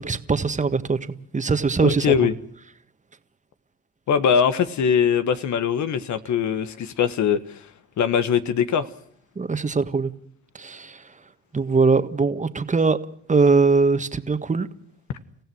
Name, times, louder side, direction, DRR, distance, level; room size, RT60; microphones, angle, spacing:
voice 1, 0.0-2.1 9.4-10.1 10.5-11.0 11.5-13.0 13.3-14.7, right 4 dB, 25° right, 1.7 m, -21 dB
voice 2, 1.8-2.3 4.1-7.6 8.0-8.9, left 7 dB, 70° left, 1.6 m, -21 dB
30.0 x 15.5 x 6.3 m
cardioid pair, 90°, 30 cm